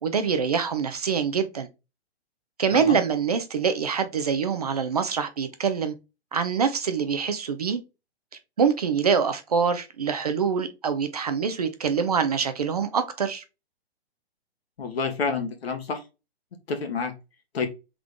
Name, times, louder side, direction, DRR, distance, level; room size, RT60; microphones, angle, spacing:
voice 1, 0.0-1.7 2.6-5.9 6.3-7.8 8.6-13.4, right 6 dB, 40° right, 0.4 m, -25 dB
voice 2, 14.8-16.0 16.7-17.1 17.5-17.7, left 5 dB, 70° left, 1.4 m, -28 dB
3.7 x 3.3 x 3.6 m
hypercardioid pair, 170°, 32 cm